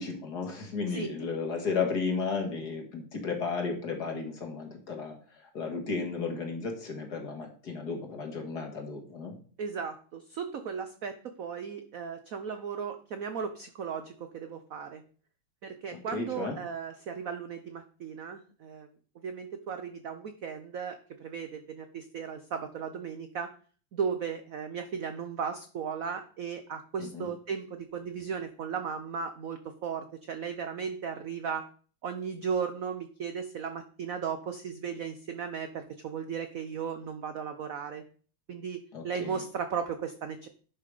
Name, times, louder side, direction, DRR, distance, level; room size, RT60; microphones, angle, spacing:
voice 1, 0.0-9.4 15.9-16.6 27.0-27.3 38.9-39.4, left 4 dB, 50° left, 3 dB, 2.3 m, -34 dB
voice 2, 9.6-15.0 15.6-18.9 19.2-23.5 23.9-31.7 32.0-38.0 38.5-40.5, right 6 dB, 70° right, 8 dB, 0.8 m, -36 dB
10.5 x 5.8 x 4.9 m, 0.42 s
omnidirectional pair, 2.4 m